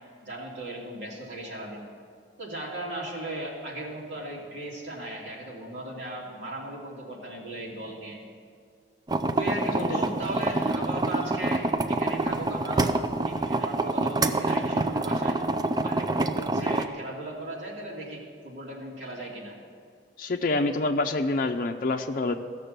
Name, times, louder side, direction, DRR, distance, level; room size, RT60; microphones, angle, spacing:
voice 1, 0.2-1.8 2.4-8.2 9.3-13.0 13.3-15.4 15.8-19.5, right 1 dB, 80° right, -4 dB, 2.8 m, -37 dB
sound 1, 9.1-16.9, right 2 dB, 20° right, 0.4 m, -26 dB
voice 2, 20.2-22.3, left 2 dB, 50° left, 4 dB, 0.5 m, -26 dB
15.0 x 6.7 x 6.7 m, 2.2 s
head